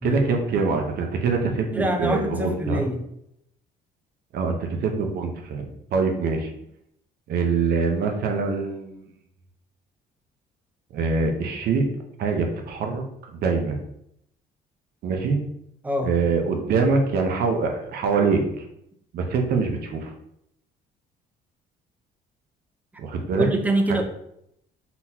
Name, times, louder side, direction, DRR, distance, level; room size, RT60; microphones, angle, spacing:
voice 1, 0.0-2.8 4.3-4.6 4.8-5.6 5.9-6.5 7.3-9.0 10.9-11.8 12.2-13.8 15.0-15.4 16.0-18.6 19.1-20.1 23.0-23.5 23.9-24.0, right 4 dB, 65° right, 4 dB, 0.9 m, -24 dB
voice 2, 1.7-3.0 15.8-16.2 23.4-24.0, right 1 dB, 10° right, 4 dB, 0.6 m, -24 dB
4.0 x 3.9 x 2.8 m, 0.75 s
cardioid pair, 110°, 17 cm